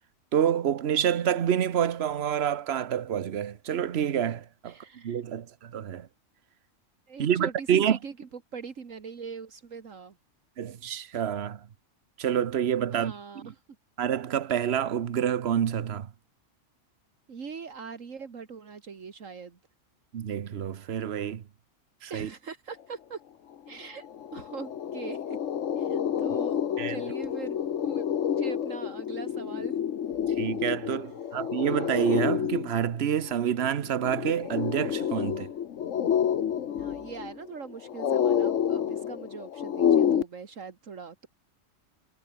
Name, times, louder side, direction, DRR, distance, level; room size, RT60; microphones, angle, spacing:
voice 1, 0.3-4.7 5.0-6.1 7.2-8.0 10.6-11.6 12.2-13.1 13.4-13.5 14.0-16.1 20.1-21.4 22.0-22.3 26.8-27.0 30.4-35.5, right 9 dB, 55° right, 1.1 m, -27 dB
voice 2, 4.7-5.4 7.1-10.2 12.9-13.6 17.3-19.6 22.1-23.2 23.7-25.4 25.8-27.6 27.8-28.1 28.4-29.8 31.0-31.1 36.7-41.3, right 5 dB, 75° right, 2.1 m, -41 dB
sound 1, 23.7-23.8 24.0-40.2, left 9 dB, 70° left, 1.3 m, -29 dB
omnidirectional pair, 1.3 m